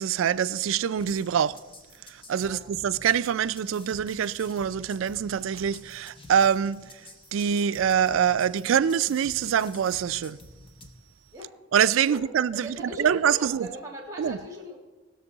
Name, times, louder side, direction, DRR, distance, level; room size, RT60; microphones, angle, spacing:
voice 1, 0.0-1.6 2.1-6.9 7.3-10.4 11.7-13.7 14.2-14.4, right 8 dB, 85° right, 0.3 m, -25 dB
sound 1, 1.0-10.9, left 2 dB, 25° left, 1.0 m, -49 dB
voice 2, 12.5-14.8, equal, 15° right, 2.0 m, -39 dB
19.5 x 6.7 x 4.0 m
head